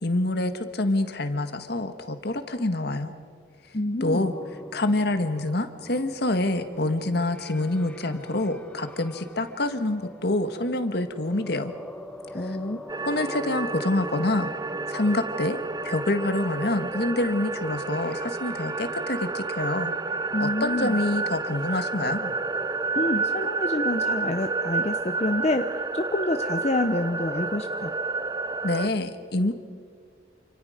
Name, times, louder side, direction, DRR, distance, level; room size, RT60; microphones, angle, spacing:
voice 1, 0.0-3.1 4.0-4.3 4.7-11.7 12.5-12.6 13.1-14.5 14.9-15.6 15.8-19.9 20.4-22.3 28.6-29.5, left 2 dB, 60° left, 8 dB, 1.7 m, -26 dB
voice 2, 3.7-4.3 12.3-12.8 20.3-21.0 22.9-27.9, left 2 dB, 35° left, 6 dB, 0.9 m, -27 dB
sound 1, 4.1-23.1, left 1 dB, 5° left, 1.3 m, -46 dB
sound 2, 12.9-28.9, right 3 dB, 20° right, 0.6 m, -30 dB
29.0 x 26.5 x 5.1 m, 2.2 s
head